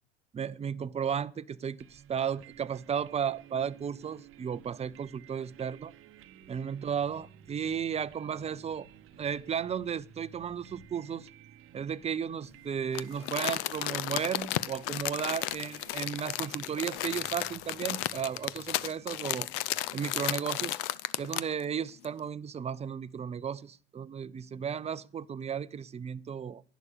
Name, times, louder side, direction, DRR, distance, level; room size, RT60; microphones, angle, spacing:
voice 1, 0.3-5.9 6.5-8.9 9.2-11.3 11.7-19.5 19.9-20.8 21.2-26.6, right 7 dB, 20° right, 0.6 m, -34 dB
sound 1, 1.8-20.5, right 11 dB, 40° right, 0.9 m, -55 dB
sound 2, 6.3-11.2, right 1 dB, 90° left, 6.2 m, -64 dB
Crumpling crinkling, 12.9-21.6 22.0-22.1, left 16 dB, 60° left, 0.6 m, -34 dB
11.0 x 10.5 x 6.7 m
hypercardioid pair, 85°, 33 cm